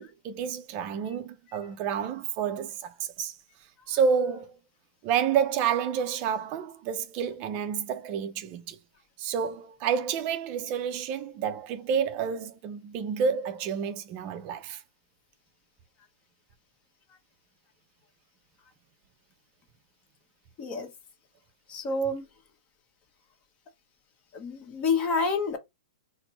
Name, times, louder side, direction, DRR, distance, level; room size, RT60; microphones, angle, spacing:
voice 1, 0.0-3.3 3.9-4.5 5.0-8.8 9.2-14.8, right 7 dB, 40° right, 0.5 m, -29 dB
voice 2, 21.7-22.2 24.3-25.6, left 3 dB, 30° left, 1.2 m, -28 dB
4.2 x 2.1 x 4.0 m
hypercardioid pair, 125°, 4 cm